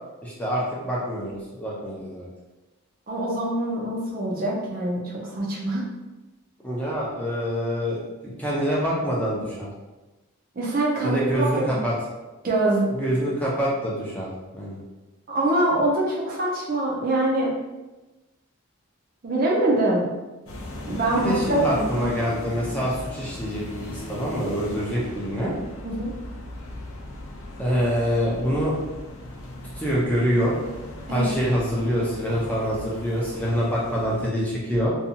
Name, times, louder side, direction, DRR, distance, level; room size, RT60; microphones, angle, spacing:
voice 1, 0.2-2.3 6.6-8.0 8.2-9.7 11.0-11.9 12.9-14.8 21.2-25.5 27.6-28.7 29.7-30.5 31.1-34.9, equal, 5° left, -6 dB, 0.5 m, -25 dB
voice 2, 3.1-5.8 10.6-11.8 12.4-12.9 15.3-17.5 19.2-20.1 20.8-22.0 25.8-26.1 31.1-31.3, right 1 dB, 40° right, -3 dB, 0.5 m, -24 dB
sound 1, 20.5-34.3, left 1 dB, 75° left, 0.5 m, -38 dB
2.6 x 2.3 x 2.7 m, 1.1 s
head